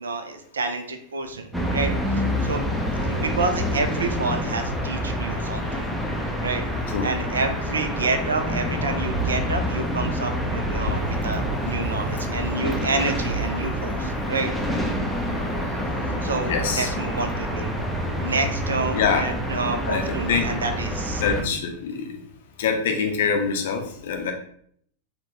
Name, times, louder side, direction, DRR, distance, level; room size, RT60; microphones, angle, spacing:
voice 1, 0.0-2.6 3.1-5.9 6.4-6.6 7.0-14.5 16.0-17.7 18.2-21.2, right 3 dB, 70° right, 7 dB, 0.4 m, -29 dB
sound 1, 1.5-21.4, equal, ahead, 0.5 m, -27 dB
voice 2, 16.5-16.9 18.9-19.3 19.8-20.5 21.2-22.2 22.6-24.3, left 6 dB, 55° left, 4 dB, 0.5 m, -24 dB
3.7 x 2.2 x 2.6 m, 0.64 s
figure-of-eight pair, 90°, 0 cm